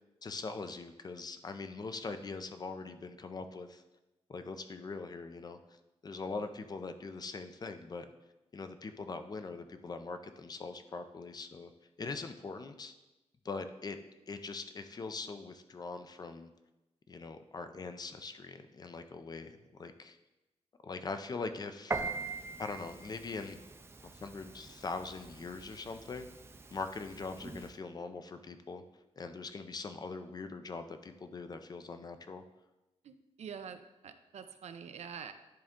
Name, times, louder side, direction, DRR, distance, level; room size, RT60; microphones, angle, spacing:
voice 1, 0.2-3.8 4.3-8.1 8.5-11.7 12.0-12.9 13.4-14.0 14.3-16.5 17.1-20.2 20.8-22.1 22.6-23.6 24.2-26.3 26.7-28.8 29.2-32.4, left 4 dB, 35° left, 8 dB, 0.5 m, -42 dB
Piano, 21.9-27.7, right 3 dB, 20° right, 0.4 m, -43 dB
voice 2, 33.0-35.3, right 7 dB, 75° right, 9 dB, 0.5 m, -46 dB
10.5 x 3.7 x 3.6 m, 1.0 s
wide cardioid pair, 120°, 11 cm